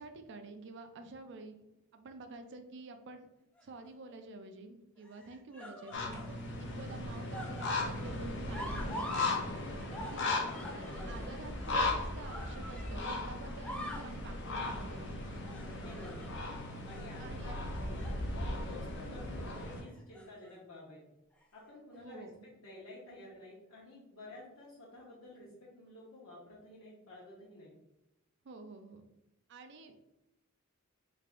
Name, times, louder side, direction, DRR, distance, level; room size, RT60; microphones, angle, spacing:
voice 1, 0.0-1.6 1.9-3.3 3.6-9.4 10.0-10.4 10.7-15.2 17.2-17.6 21.9-22.4 28.4-29.0 29.5-30.0, right 3 dB, 60° right, 7 dB, 0.4 m, -49 dB
sound 1, 3.6-4.1 5.0-6.3 6.7-9.4 9.7-13.2 13.5-14.1 14.6-14.9 15.5-16.5 16.9-17.1 17.7-18.2 18.6-18.8 19.9-20.5 21.4-21.5, equal, 5° left, 0.3 m, -45 dB
sound 2, 5.9-19.8, left 2 dB, 55° left, 0.6 m, -37 dB
voice 2, 10.9-11.3 15.6-16.4 16.8-17.7 18.3-21.0 21.5-27.7, left 1 dB, 80° left, -7 dB, 0.9 m, -51 dB
3.5 x 3.3 x 2.4 m, 0.91 s
head